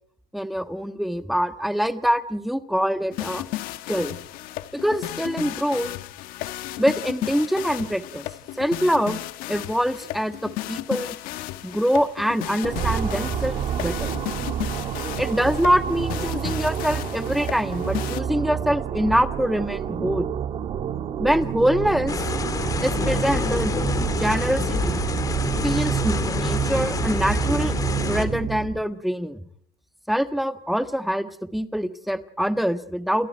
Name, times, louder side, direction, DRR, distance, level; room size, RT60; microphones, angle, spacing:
voice 1, 0.3-3.4 3.9-4.2 4.7-5.9 6.8-8.3 8.6-9.2 9.5-11.2 11.6-14.2 15.2-20.3 21.2-22.1 22.8-23.9 24.2-25.0 25.6-27.7 28.0-29.5 30.1-33.3, equal, ahead, 9 dB, 1.5 m, -24 dB
sound 1, 3.1-18.2, left 15 dB, 60° left, 1.5 m, -34 dB
sound 2, 12.6-28.8, right 9 dB, 35° right, 2.0 m, -28 dB
sound 3, 22.1-28.2, left 5 dB, 20° left, 2.5 m, -28 dB
29.0 x 28.0 x 4.6 m, 0.68 s
cardioid pair, 150°, 16 cm